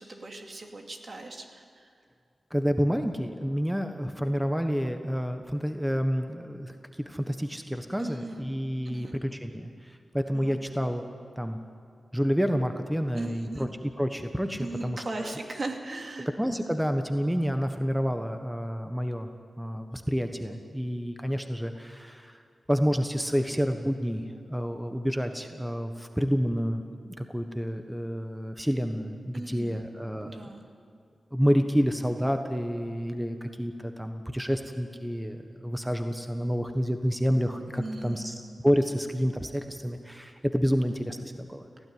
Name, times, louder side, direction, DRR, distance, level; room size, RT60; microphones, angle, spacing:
voice 1, 0.0-1.9 8.0-8.6 8.8-9.1 10.3-10.6 13.1-13.7 14.6-16.3 29.3-29.9 30.2-30.6 37.8-38.3, right 2 dB, 55° right, 3 dB, 2.6 m, -38 dB
voice 2, 2.5-6.7 7.0-11.0 11.4-11.6 12.1-15.3 16.4-19.3 19.6-22.4 22.7-30.3 31.3-38.3 38.6-41.9, equal, 5° right, 6 dB, 1.3 m, -29 dB
18.0 x 15.5 x 9.6 m, 2.4 s
cardioid pair, 60°, 0 cm